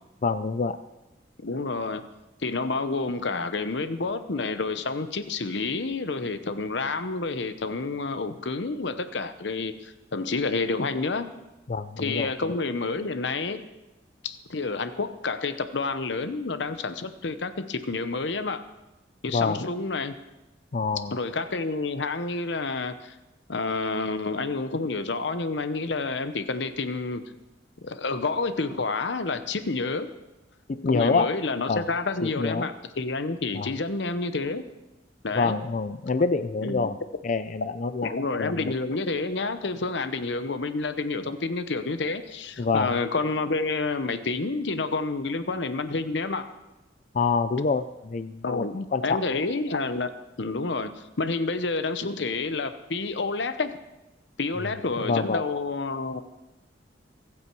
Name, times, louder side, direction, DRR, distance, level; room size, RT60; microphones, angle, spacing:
voice 1, 0.2-0.8 11.7-12.5 19.3-19.6 20.7-21.2 30.7-31.3 31.7-31.8 32.2-32.7 33.5-33.7 35.4-37.0 37.2-38.1 38.4-38.7 42.6-43.0 47.1-49.2 55.0-55.4, left 4 dB, 40° left, 12 dB, 0.5 m, -26 dB
voice 2, 1.4-2.0 2.4-11.3 12.0-13.6 14.2-18.6 19.2-20.1 21.1-23.1 23.5-27.2 27.8-30.1 30.9-34.6 35.2-35.6 36.6-36.9 38.0-46.5 48.4-50.1 50.4-53.7 54.4-56.2, left 3 dB, 65° left, 11 dB, 0.9 m, -29 dB
24.0 x 8.7 x 4.7 m, 1.0 s
head